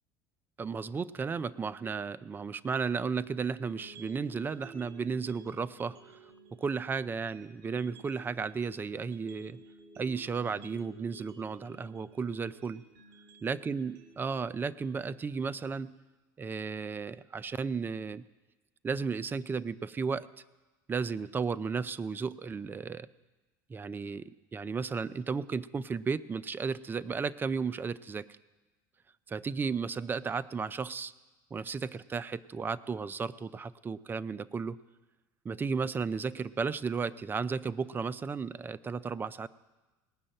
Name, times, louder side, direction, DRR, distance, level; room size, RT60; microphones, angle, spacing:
voice 1, 0.6-6.2 6.5-9.6 10.0-12.8 13.4-15.9 16.4-18.2 18.8-20.3 20.9-23.1 23.7-28.2 29.3-31.1 31.5-34.8 35.4-39.5, right 5 dB, 20° right, 17 dB, 0.4 m, -34 dB
sound 1, 3.6-15.6, right 2 dB, 70° right, 2.4 m, -54 dB
18.5 x 6.3 x 8.9 m, 1.2 s
supercardioid pair, 110°, 10 cm